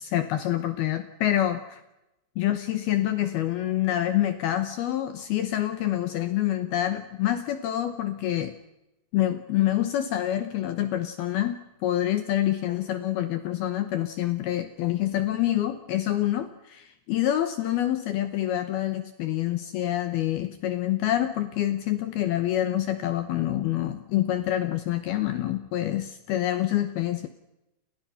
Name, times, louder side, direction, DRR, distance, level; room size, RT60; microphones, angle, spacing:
voice 1, 0.0-1.8 2.4-8.5 9.1-27.3, left 13 dB, 70° left, 9 dB, 2.4 m, -27 dB
30.0 x 28.5 x 5.8 m, 0.94 s
omnidirectional pair, 5.5 m